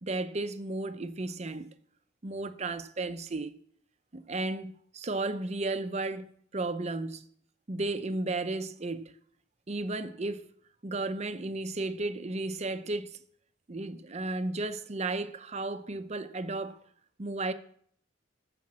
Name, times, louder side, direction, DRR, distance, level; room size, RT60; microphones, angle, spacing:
voice 1, 0.0-1.7 2.2-3.6 4.1-7.3 7.7-9.1 9.7-10.5 10.8-13.2 13.7-16.8 17.2-17.5, right 2 dB, 35° right, 0.7 m, -34 dB
13.5 x 5.2 x 7.3 m
head